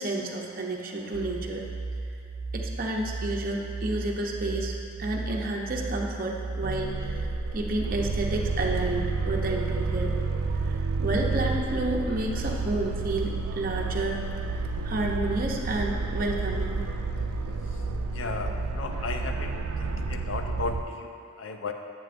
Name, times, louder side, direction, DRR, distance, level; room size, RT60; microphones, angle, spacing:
voice 1, 0.0-1.6 2.5-10.1 10.5-14.2 14.5-16.8, right 2 dB, 40° right, -1 dB, 0.7 m, -31 dB
sound 1, 1.1-20.7, right 3 dB, 50° left, 1.0 m, -35 dB
sound 2, 6.6-20.8, right 4 dB, 90° right, 0.4 m, -31 dB
voice 2, 18.1-21.7, left 4 dB, 65° left, 5 dB, 0.5 m, -35 dB
8.9 x 7.5 x 2.5 m, 2.4 s
head